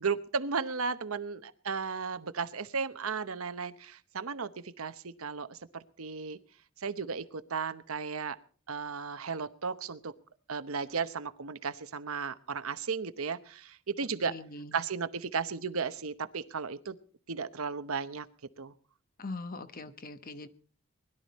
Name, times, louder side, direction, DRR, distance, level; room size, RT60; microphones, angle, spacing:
voice 1, 0.0-6.4 6.8-8.4 8.7-10.1 10.5-14.4 14.7-17.0 17.3-18.3 18.6-18.7, right 5 dB, 80° right, 12 dB, 0.9 m, -35 dB
voice 2, 14.3-14.8 19.2-20.5, left 2 dB, 45° left, 11 dB, 1.0 m, -41 dB
20.5 x 12.0 x 4.2 m, 0.42 s
head